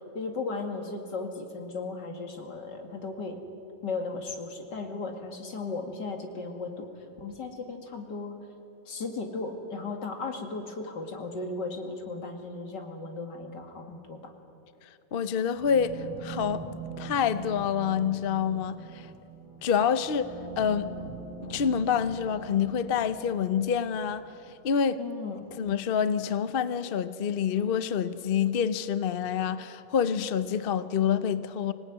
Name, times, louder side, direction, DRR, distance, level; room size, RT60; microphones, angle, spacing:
voice 1, 0.1-3.4 3.8-6.9 7.2-8.4 8.9-14.2 25.0-25.4, left 3 dB, 80° left, 2.8 m, -36 dB
voice 2, 15.1-16.6 17.0-19.1 19.6-20.9 21.4-24.3 24.6-25.0 25.6-31.7, left 7 dB, 50° left, 0.7 m, -27 dB
sound 1, 15.5-24.5, right 4 dB, 35° right, 4.5 m, -43 dB
26.0 x 18.0 x 9.4 m
omnidirectional pair, 1.9 m